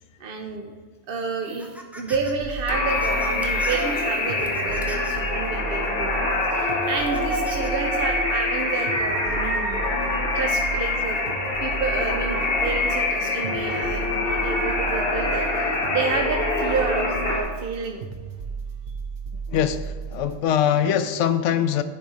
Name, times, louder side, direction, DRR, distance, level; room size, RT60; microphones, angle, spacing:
voice 1, 0.2-0.7 1.1-9.8 10.3-11.2 11.6-18.0, right 4 dB, 55° right, 2 dB, 0.8 m, -30 dB
sound 1, 1.4-2.3 2.7-5.3 5.9-6.0 6.8-7.7, equal, ahead, 0.6 m, -41 dB
sound 2, 2.1-20.4, right 5 dB, 80° right, 1.1 m, -34 dB
sound 3, 2.7-17.4, left 2 dB, 55° left, 1.3 m, -25 dB
voice 2, 19.5-21.8, left 9 dB, 85° left, 10 dB, 0.9 m, -22 dB
10.5 x 4.1 x 4.8 m, 1.4 s
omnidirectional pair, 1.2 m